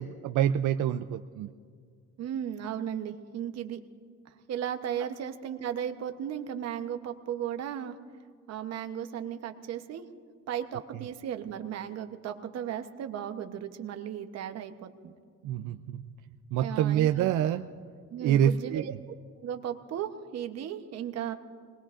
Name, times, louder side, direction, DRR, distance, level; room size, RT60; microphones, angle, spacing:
voice 1, 0.0-1.5 15.4-16.1 16.5-17.6 18.2-18.8, right 10 dB, 80° right, 8 dB, 0.5 m, -26 dB
voice 2, 2.2-3.8 4.2-8.0 8.5-10.1 10.5-15.1 16.6-17.3 18.1-18.9 19.4-21.3, right 9 dB, 60° right, 7 dB, 1.0 m, -35 dB
26.5 x 20.0 x 2.5 m, 2.1 s
cardioid pair, 170°, 30 cm